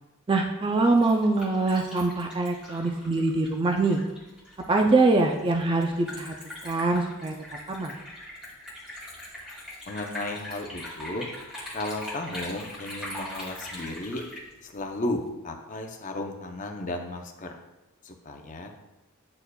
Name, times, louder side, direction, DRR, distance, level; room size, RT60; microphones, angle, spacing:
voice 1, 0.3-4.0 4.7-6.3 6.6-7.3 7.7-8.0, right 3 dB, 25° right, 3 dB, 0.3 m, -23 dB
Liquid, 0.8-15.3, left 1 dB, 5° right, 1.9 m, -41 dB
voice 2, 9.9-11.3 11.7-14.2 14.6-17.5 18.0-18.7, left 2 dB, 35° left, 4 dB, 0.6 m, -34 dB
9.6 x 4.4 x 2.3 m, 1.0 s
head